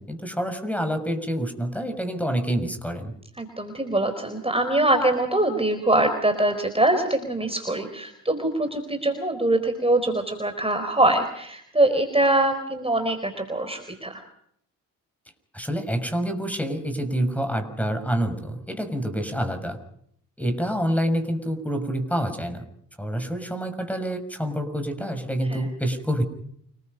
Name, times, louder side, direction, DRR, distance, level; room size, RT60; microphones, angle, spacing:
voice 1, 0.0-3.1 15.5-19.8 20.4-22.6 23.0-26.2, equal, 5° left, 8 dB, 6.2 m, -27 dB
voice 2, 3.4-14.2 25.5-25.6, right 1 dB, 15° right, 7 dB, 4.4 m, -23 dB
29.0 x 21.0 x 5.5 m, 0.68 s
supercardioid pair, 50°, 39 cm